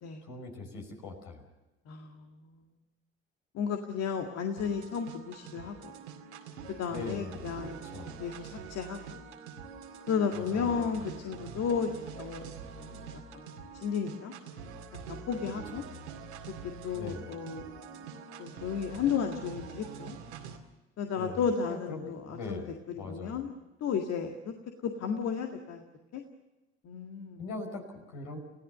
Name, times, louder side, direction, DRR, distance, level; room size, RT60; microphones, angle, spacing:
voice 1, 0.2-1.4 6.9-8.2 10.3-10.8 15.7-15.8 16.9-17.3 21.2-23.4 27.4-28.4, left 3 dB, 65° left, 3 dB, 5.7 m, -41 dB
voice 2, 1.9-2.3 3.5-5.9 6.8-7.8 8.2-9.2 10.1-13.5 13.8-14.3 15.1-15.8 16.8-18.1 18.4-20.2 21.0-22.6 23.0-23.5 23.8-24.5 24.8-25.8 26.1-26.2 26.8-27.5, left 6 dB, 50° left, 4 dB, 2.0 m, -33 dB
sound 1, 4.6-20.6, right 6 dB, 80° right, 2.4 m, -45 dB
29.5 x 16.5 x 6.8 m, 1.1 s
figure-of-eight pair, 60°, 32 cm